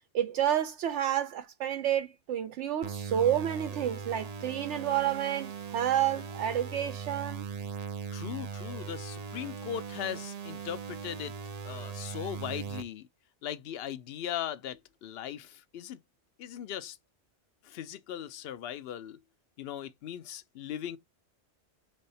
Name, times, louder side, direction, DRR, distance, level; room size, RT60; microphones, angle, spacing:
voice 1, 0.1-7.5, right 10 dB, 80° right, 0.9 m, -30 dB
sound 1, 2.8-12.8, right 6 dB, 55° right, 0.4 m, -39 dB
voice 2, 8.1-11.4 11.6-13.1 13.4-16.0 16.4-17.0 17.6-19.2 19.6-21.0, left 10 dB, 65° left, 0.8 m, -39 dB
3.7 x 3.4 x 4.1 m
omnidirectional pair, 1.2 m